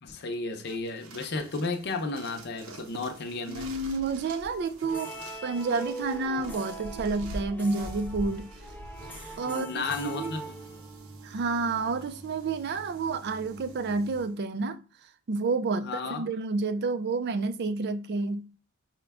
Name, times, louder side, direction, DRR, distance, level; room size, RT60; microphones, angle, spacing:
voice 1, 0.0-3.7 9.4-10.5 15.8-16.3, left 3 dB, 50° left, 0.6 m, -33 dB
sound 1, 0.7-14.4, right 1 dB, 75° right, 0.7 m, -45 dB
voice 2, 3.5-5.1 5.4-8.5 9.4-10.3 11.2-14.8 15.3-18.5, right 3 dB, 50° right, 0.4 m, -30 dB
sound 2, 4.8-11.1, right 1 dB, 10° left, 0.5 m, -42 dB
4.9 x 2.2 x 3.4 m
head